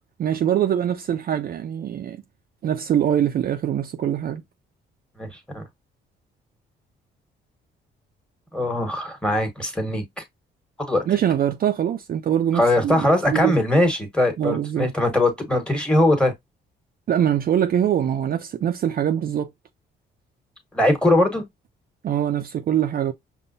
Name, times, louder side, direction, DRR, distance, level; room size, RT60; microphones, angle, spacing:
voice 1, 0.2-2.2 2.6-4.4 11.1-13.6 14.4-14.9 17.1-19.5 22.0-23.1, right 10 dB, 50° right, 0.4 m, -23 dB
voice 2, 8.5-10.2 10.9-11.0 12.5-16.3 20.7-21.4, left 1 dB, 5° left, 1.4 m, -21 dB
5.3 x 2.2 x 2.7 m
cardioid pair, 90°, 20 cm